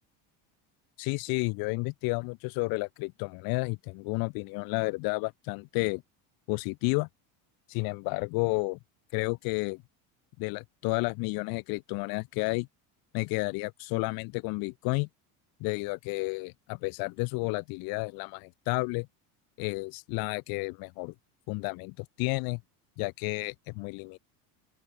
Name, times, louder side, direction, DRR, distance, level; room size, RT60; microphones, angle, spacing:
voice 1, 1.0-6.0 6.5-7.1 7.7-8.8 9.1-9.8 10.4-12.7 13.1-15.1 15.6-19.1 19.6-21.1 21.5-22.6 23.0-24.2, left 28 dB, 55° left, 0.9 m, -31 dB
open air
cardioid pair, 160°, 42 cm